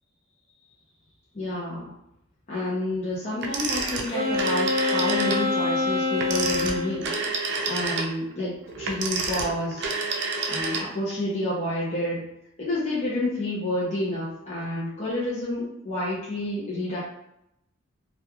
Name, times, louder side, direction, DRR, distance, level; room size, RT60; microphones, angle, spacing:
voice 1, 1.3-1.9 2.5-9.9 10.5-12.3 12.6-17.0, left 1 dB, 35° left, -8 dB, 0.6 m, -29 dB
Telephone, 3.4-5.5 6.1-11.2, right 4 dB, 60° right, 0.4 m, -29 dB
Wind instrument woodwind instrument, 4.1-7.0, left 3 dB, 70° left, 1.1 m, -25 dB
3.0 x 2.4 x 2.3 m, 0.82 s
head